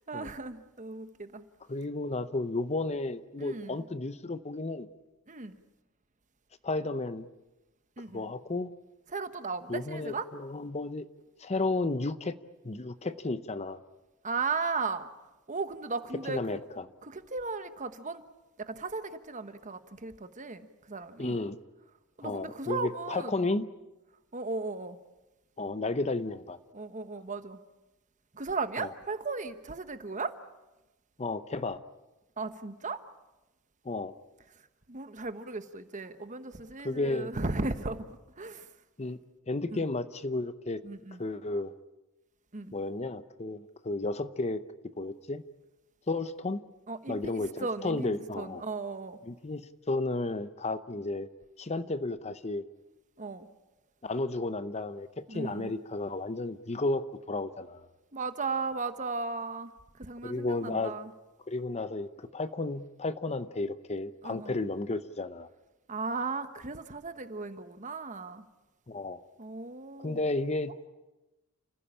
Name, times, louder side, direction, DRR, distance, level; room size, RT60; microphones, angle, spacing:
voice 1, 0.1-1.4 3.4-3.8 5.3-5.6 8.0-8.3 9.1-10.3 14.2-15.1 15.5-16.4 17.0-18.2 18.6-21.4 22.2-23.5 24.3-25.0 26.7-27.6 28.3-30.4 32.4-33.0 34.9-38.1 38.4-38.7 39.7-39.9 40.8-41.2 42.5-42.7 46.9-49.2 53.2-53.5 55.3-55.8 58.1-61.1 64.2-64.5 65.9-68.4 69.4-70.2, right 4 dB, 35° right, 1.2 m, -36 dB
voice 2, 1.7-4.9 6.6-7.3 8.1-8.7 9.7-11.1 11.4-12.4 12.6-13.8 16.3-16.8 21.2-21.6 22.2-23.7 25.6-26.6 28.8-28.9 31.2-31.8 33.8-34.1 36.8-37.3 39.0-39.2 39.5-40.8 41.2-41.7 42.7-44.6 45.0-45.4 46.1-46.6 47.1-48.6 49.3-51.3 51.6-52.6 54.0-57.9 60.2-60.9 61.5-65.5 68.9-69.2 70.0-70.9, left 2 dB, 30° left, 0.7 m, -33 dB
29.5 x 15.5 x 8.7 m
head